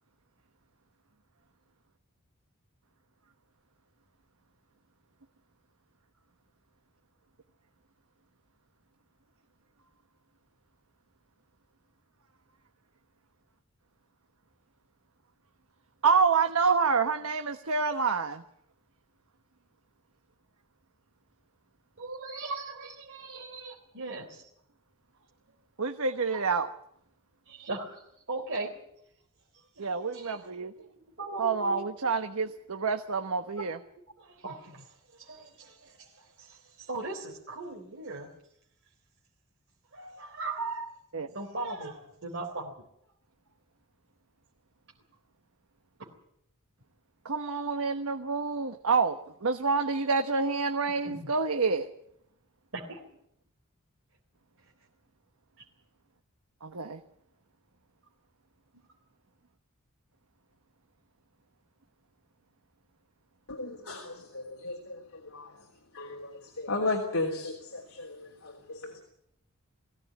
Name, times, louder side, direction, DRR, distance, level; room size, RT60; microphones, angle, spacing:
voice 1, 16.0-18.4 25.8-26.7 29.8-30.7 31.4-33.8 41.1-41.3 47.2-51.9 56.6-57.0, right 5 dB, 80° right, 6 dB, 1.2 m, -27 dB
voice 2, 22.0-24.5 26.0-26.4 27.5-28.0 28.3-28.7 29.8-29.9 30.1-30.5 31.2-31.8 34.2-38.3 39.9-41.0 41.3-42.9 46.0-46.1 51.1-51.3 52.7-53.0, right 3 dB, 60° right, -1 dB, 3.8 m, -39 dB
voice 3, 63.5-65.5 65.9-69.0, left 2 dB, 75° left, 0 dB, 3.3 m, -35 dB
21.0 x 16.5 x 9.4 m, 0.76 s
head